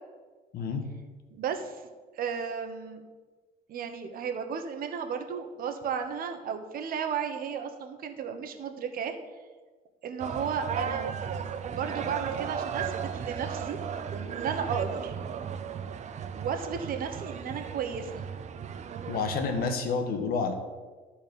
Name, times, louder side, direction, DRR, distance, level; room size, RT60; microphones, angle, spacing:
voice 1, 0.5-0.9 19.1-20.5, left 5 dB, 65° left, 7 dB, 1.5 m, -29 dB
voice 2, 1.3-1.8 2.1-3.0 3.7-9.2 10.0-11.1 11.8-13.8 14.3-15.1 16.3-18.2, right 7 dB, 60° right, 6 dB, 1.2 m, -34 dB
sound 1, 10.2-19.7, right 7 dB, 45° right, 0.7 m, -35 dB
13.0 x 4.3 x 6.9 m, 1.4 s
cardioid pair, 110°, 17 cm